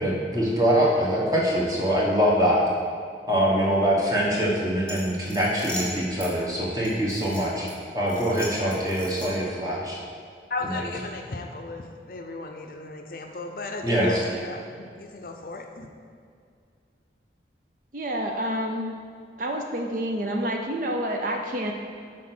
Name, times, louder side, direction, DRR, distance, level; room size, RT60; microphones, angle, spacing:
voice 1, 0.0-2.6 3.3-7.7 7.9-10.0 10.6-10.9 13.8-14.2, equal, 20° right, -4 dB, 1.2 m, -23 dB
sound 1, 4.8-6.3 6.8-7.7 8.1-9.5, left 1 dB, 5° left, 1.1 m, -38 dB
voice 2, 10.5-15.9, left 3 dB, 50° left, 4 dB, 0.5 m, -35 dB
voice 3, 17.9-18.9 19.4-21.7, equal, 45° right, 2 dB, 0.5 m, -28 dB
6.2 x 4.5 x 6.0 m, 2.2 s
head